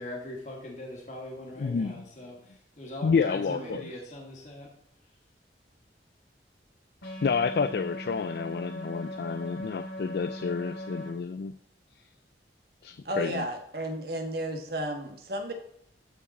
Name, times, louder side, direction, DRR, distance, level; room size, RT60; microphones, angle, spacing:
voice 1, 0.0-4.7, left 1 dB, 40° left, 2.2 m, -41 dB
voice 2, 1.6-2.0 3.0-3.9 7.2-11.6 12.8-13.5, left 5 dB, 60° left, 0.3 m, -29 dB
voice 3, 3.5-3.8 13.0-15.5, right 1 dB, 60° right, 1.4 m, -33 dB
sound 1, 7.0-11.1, equal, 85° left, 3.1 m, -39 dB
14.0 x 4.9 x 4.1 m
head